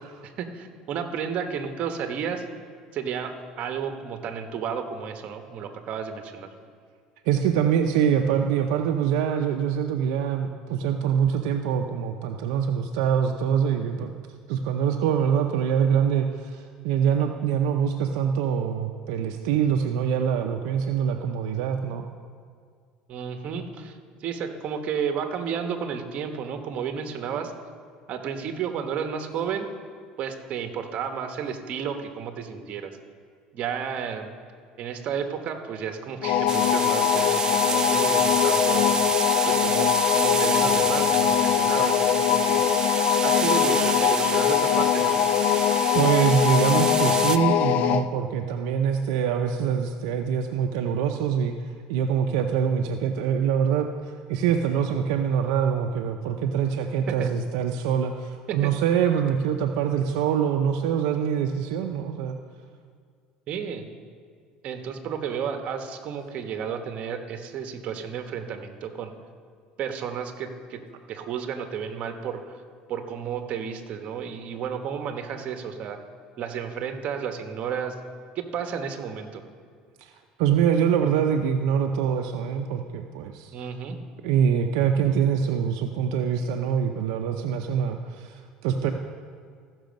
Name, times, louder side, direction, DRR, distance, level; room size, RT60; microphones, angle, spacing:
voice 1, 0.2-2.4 2.9-3.3 3.6-6.5 23.1-27.5 28.1-29.7 30.2-33.0 33.5-34.3 34.8-38.9 39.4-42.8 43.2-45.2 57.1-57.3 58.5-58.7 63.5-63.9 64.6-69.1 69.8-70.8 71.1-72.4 72.9-76.0 76.4-78.0 78.3-79.4 83.5-84.0, right 7 dB, 50° right, 6 dB, 1.1 m, -32 dB
voice 2, 7.3-14.1 14.5-22.1 45.6-51.5 51.9-62.4 80.0-80.1 80.4-83.5 84.2-88.9, right 8 dB, 80° right, 4 dB, 0.6 m, -24 dB
sound 1, 36.2-48.1, left 10 dB, 60° left, 0.4 m, -22 dB
sound 2, 36.5-47.4, right 5 dB, 25° right, 0.5 m, -29 dB
14.5 x 6.2 x 5.2 m, 2.1 s
supercardioid pair, 110°, 3 cm